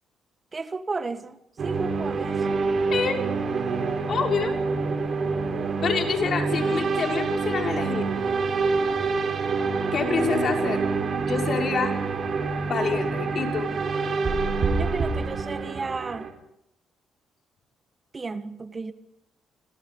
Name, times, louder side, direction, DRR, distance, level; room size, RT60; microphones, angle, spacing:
voice 1, 0.5-1.4 1.6-2.6 6.0-6.1 14.8-16.3 18.1-18.9, right 4 dB, 30° right, 1.6 m, -33 dB
sound 1, 1.6-16.3, right 4 dB, 50° right, 4.5 m, -26 dB
voice 2, 4.1-4.5 5.8-8.1 9.9-10.9 11.2-11.9 12.6-13.7, left 6 dB, 55° left, 5.8 m, -27 dB
27.0 x 26.5 x 4.0 m
cardioid pair, 90°, 0 cm